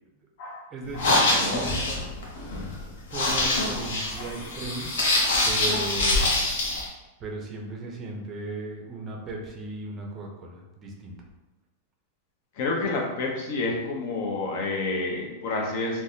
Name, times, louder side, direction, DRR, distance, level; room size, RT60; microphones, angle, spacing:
voice 1, 0.7-2.0 3.1-4.9 5.4-6.3 7.2-11.2, right 2 dB, 25° right, 0 dB, 0.5 m, -36 dB
sound 1, 0.9-6.9, left 2 dB, 85° left, 0.8 m, -25 dB
voice 2, 12.6-16.0, left 3 dB, 55° left, 0 dB, 0.7 m, -29 dB
3.2 x 2.2 x 2.7 m, 1.0 s
supercardioid pair, 150°, 0 cm